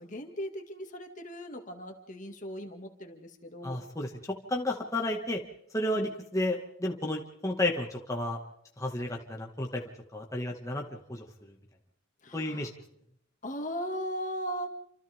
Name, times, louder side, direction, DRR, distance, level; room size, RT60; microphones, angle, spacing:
voice 1, 0.0-3.8 5.9-6.1 12.2-12.7 13.4-14.7, equal, 40° left, 4 dB, 2.3 m, -38 dB
voice 2, 3.6-4.1 4.5-5.4 5.7-8.4 8.8-9.8 10.1-11.5 12.3-12.7, left 1 dB, 15° left, 0 dB, 1.9 m, -32 dB
29.0 x 26.5 x 3.7 m, 0.72 s
head